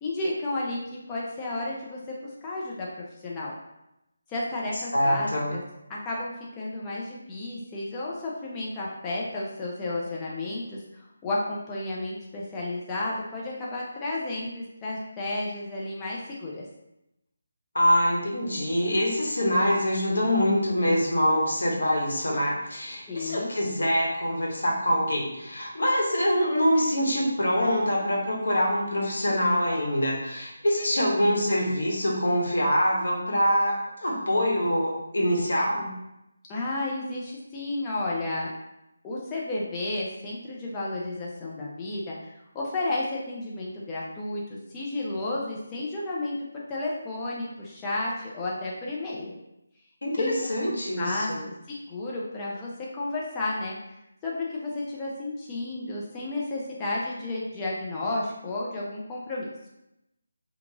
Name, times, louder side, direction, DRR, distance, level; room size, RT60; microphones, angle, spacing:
voice 1, 0.0-2.7 3.2-3.5 4.3-5.6 5.9-16.6 23.1-23.5 36.5-38.5 39.0-46.4 46.7-49.3 50.2-50.3 50.6-51.3 51.7-53.8 54.2-59.5, left 2 dB, 15° left, -5 dB, 0.5 m, -32 dB
voice 2, 4.9-5.5 17.7-35.9 50.0-51.4, equal, 75° left, -2 dB, 1.1 m, -25 dB
2.9 x 2.5 x 3.5 m, 0.87 s
figure-of-eight pair, 160°, 0 cm